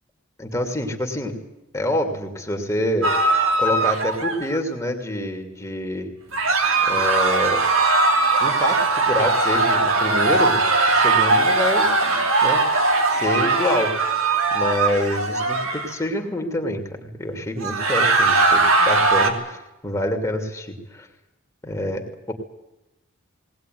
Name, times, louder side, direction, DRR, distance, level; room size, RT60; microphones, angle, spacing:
voice 1, 0.4-1.3 1.7-3.1 3.6-6.1 6.9-7.6 8.4-10.6 10.9-12.6 13.1-14.1 14.5-21.1 21.6-22.0 22.3-22.4, left 1 dB, 15° left, 3 dB, 2.8 m, -26 dB
sound 1, 3.0-4.6 6.3-15.9 17.6-19.3, right 3 dB, 85° right, 3.1 m, -19 dB
20.0 x 19.5 x 9.4 m, 0.96 s
head